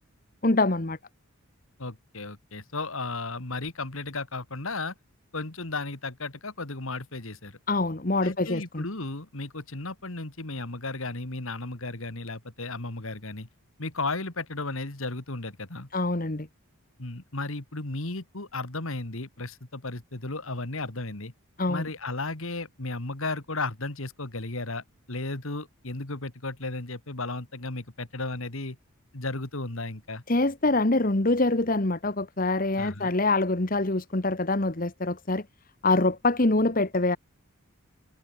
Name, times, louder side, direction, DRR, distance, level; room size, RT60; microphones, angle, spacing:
voice 1, 0.4-1.0 7.7-8.8 15.9-16.5 21.6-21.9 30.3-35.4 35.8-37.2, left 2 dB, 40° left, 1.3 m, -25 dB
voice 2, 1.8-4.9 5.3-7.6 8.2-13.5 13.8-15.9 17.0-21.3 21.7-28.8 29.1-30.2 32.8-33.1, left 2 dB, 65° left, 2.3 m, -34 dB
head